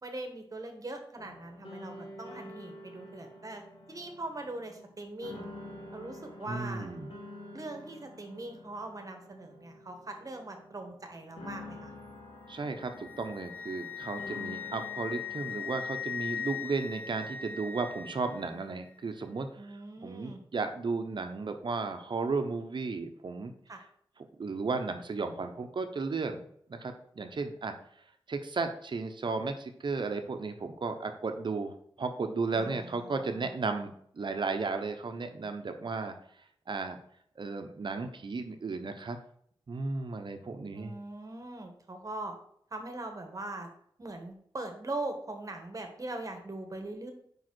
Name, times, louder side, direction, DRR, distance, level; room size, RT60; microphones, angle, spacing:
voice 1, 0.0-3.6 3.9-5.5 5.9-6.9 7.5-11.9 19.5-20.4 23.7-23.8 32.5-33.5 40.7-42.3 42.7-43.7 44.0-47.1, right 2 dB, 40° right, 5 dB, 1.4 m, -41 dB
sound 1, 1.2-18.2, left 1 dB, 85° left, 1.7 m, -49 dB
voice 2, 6.5-7.1 12.5-19.5 20.0-23.5 24.4-26.4 26.7-27.7 28.3-36.1 36.7-37.0 37.4-39.2 39.7-40.9, right 4 dB, 60° right, 7 dB, 0.9 m, -34 dB
Wind instrument woodwind instrument, 12.6-18.5, left 7 dB, 20° left, 0.6 m, -39 dB
5.1 x 4.9 x 6.2 m, 0.67 s
wide cardioid pair, 85°, 9 cm